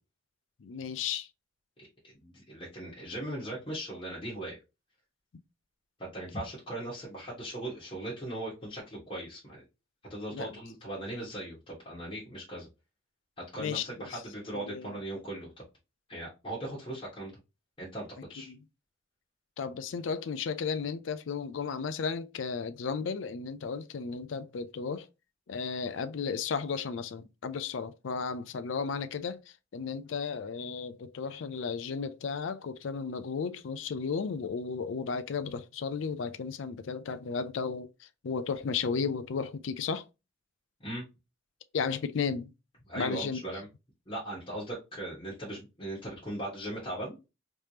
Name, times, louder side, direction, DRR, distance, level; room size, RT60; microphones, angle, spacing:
voice 1, 0.6-1.3 10.3-10.5 13.6-13.9 14.1-14.2 14.5-15.0 18.5-18.6 19.6-25.1 25.5-40.0 41.7-42.5 42.9-43.4, left 5 dB, 70° left, 0.4 m, -34 dB
voice 2, 1.8-4.6 6.0-9.6 10.1-12.7 13.5-15.5 16.1-17.4 17.8-18.5 40.8-41.0 42.9-43.7 44.1-47.2, right 1 dB, 25° left, 1.4 m, -39 dB
3.3 x 3.2 x 2.8 m
head